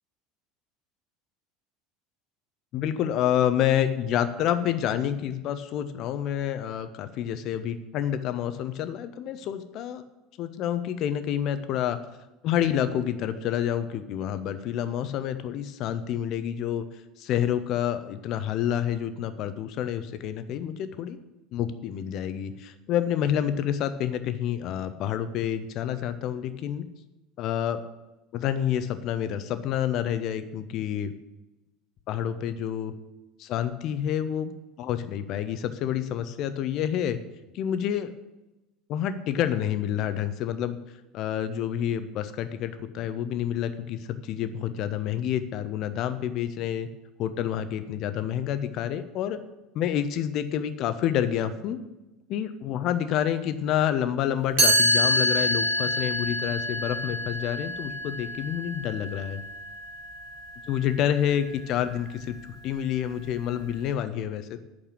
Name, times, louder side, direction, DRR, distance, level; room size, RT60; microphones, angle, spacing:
voice 1, 2.7-10.0 10.4-12.0 12.4-16.9 17.2-21.2 21.5-26.8 27.4-27.8 28.3-31.1 32.1-32.9 33.4-34.5 34.8-37.2 37.5-38.1 38.9-40.8 41.1-46.9 47.2-49.4 49.7-51.8 52.3-59.4 60.7-62.4 62.6-64.6, left 10 dB, 45° left, 11 dB, 0.9 m, -28 dB
Chime, 54.6-60.4, equal, 60° right, 3.5 m, -26 dB
8.8 x 6.6 x 8.6 m, 0.98 s
figure-of-eight pair, 70°, 0 cm